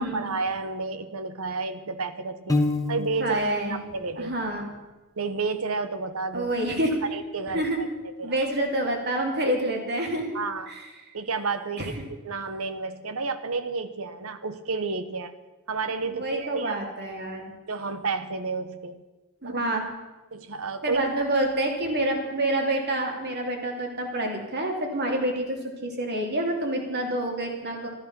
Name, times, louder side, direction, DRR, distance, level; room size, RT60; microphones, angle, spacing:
voice 1, 0.0-2.6 2.9-3.4 3.7-4.3 5.2-6.5 7.1-8.4 10.3-10.8 11.1-15.3 15.7-16.8 17.7-19.0 19.4-19.6 20.3-21.1, right 4 dB, 75° right, 11 dB, 1.1 m, -31 dB
Piano, 2.5-3.5, left 2 dB, 15° left, 1.1 m, -26 dB
voice 2, 3.2-3.8 4.2-4.6 6.3-7.0 7.5-7.8 8.2-10.4 10.7-10.8 11.8-11.9 16.1-17.5 19.4-19.8 20.8-27.9, right 1 dB, 50° right, 2 dB, 2.8 m, -27 dB
13.5 x 13.0 x 6.0 m, 1.1 s
head